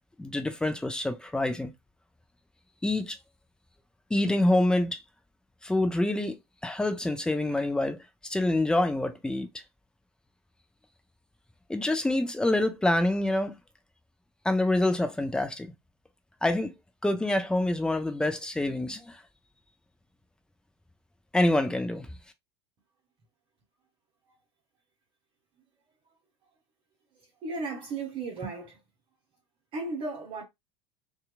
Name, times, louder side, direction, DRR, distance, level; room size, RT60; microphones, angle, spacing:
voice 1, 0.2-1.7 2.8-3.2 4.1-5.0 5.6-6.4 6.6-9.5 11.7-13.5 14.4-15.7 16.4-16.7 17.0-19.2 21.3-22.1, left 1 dB, 5° left, 0.5 m, -26 dB
voice 2, 27.4-28.8 29.7-30.4, right 3 dB, 40° right, 1.0 m, -35 dB
2.8 x 2.4 x 2.4 m
figure-of-eight pair, 75°, 14 cm